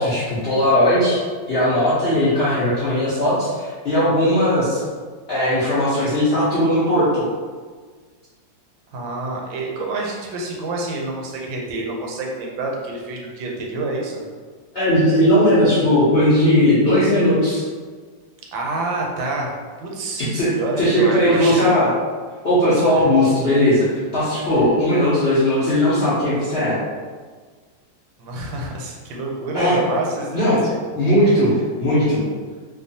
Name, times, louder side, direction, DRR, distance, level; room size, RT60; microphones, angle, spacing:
voice 1, 0.0-4.8 5.3-7.3 14.7-17.6 20.2-20.5 20.8-21.9 22.4-23.9 24.1-26.8 29.5-29.8 30.3-30.6 31.0-31.5 31.8-32.2, left 1 dB, 85° left, -11 dB, 0.5 m, -18 dB
voice 2, 8.9-14.2 18.5-19.5 19.8-21.7 22.9-23.0 24.5-24.7 28.2-30.9, right 2 dB, 90° right, -1 dB, 1.3 m, -28 dB
2.9 x 2.2 x 2.6 m, 1.5 s
omnidirectional pair, 2.0 m